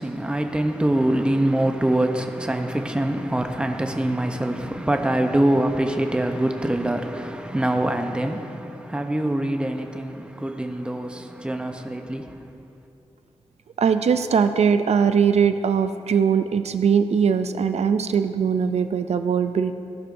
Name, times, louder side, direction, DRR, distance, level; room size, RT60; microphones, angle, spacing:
voice 1, 0.0-12.5, right 1 dB, 10° right, 0.6 m, -24 dB
voice 2, 13.8-19.7, right 6 dB, 70° right, 0.4 m, -20 dB
16.5 x 11.5 x 2.6 m
wide cardioid pair, 155°, 11 cm